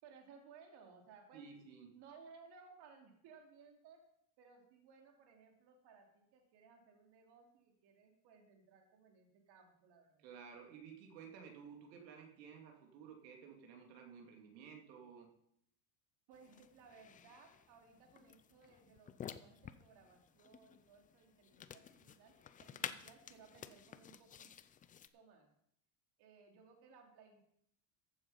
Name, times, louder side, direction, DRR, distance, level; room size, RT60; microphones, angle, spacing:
voice 1, 0.0-1.4 1.9-4.0 4.4-10.3 16.3-24.5 25.1-25.5 26.2-27.4, right 5 dB, 50° right, 2 dB, 2.9 m, -61 dB
voice 2, 1.3-1.9 10.2-15.3, right 6 dB, 85° right, 2 dB, 3.0 m, -54 dB
sound 1, 16.3-25.1, left 8 dB, 20° left, 0.4 m, -52 dB
14.5 x 7.9 x 5.7 m, 0.72 s
supercardioid pair, 125°, 49 cm